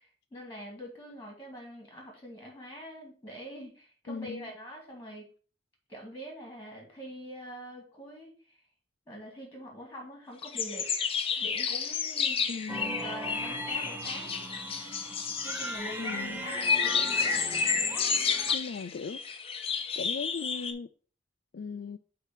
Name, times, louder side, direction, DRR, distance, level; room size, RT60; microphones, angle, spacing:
voice 1, 0.0-5.3 5.9-8.6 9.1-10.9 11.4-12.5 13.0-14.4 15.4-17.2, equal, 10° left, 2.2 m, -44 dB
voice 2, 4.1-4.5 12.5-13.0 16.0-16.4 18.5-19.2 20.0-20.9 21.5-22.0, left 5 dB, 60° left, 0.3 m, -37 dB
sound 1, 10.4-20.7, left 6 dB, 30° left, 0.7 m, -31 dB
sound 2, 12.7-18.5, right 1 dB, 10° right, 0.8 m, -39 dB
8.0 x 2.8 x 5.8 m
head